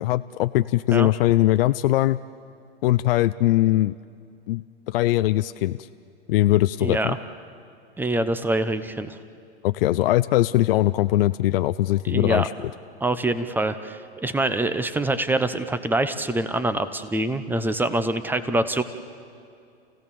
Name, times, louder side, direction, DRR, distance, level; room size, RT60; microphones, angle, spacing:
voice 1, 0.0-2.2 2.8-4.0 4.5-5.8 6.3-7.1 9.6-12.7, left 16 dB, 60° left, 12 dB, 0.5 m, -21 dB
voice 2, 6.8-7.2 8.0-9.2 12.0-12.5 13.0-18.8, right 2 dB, 5° right, 11 dB, 0.9 m, -25 dB
28.5 x 16.5 x 7.0 m, 2.5 s
hypercardioid pair, 115°, 34 cm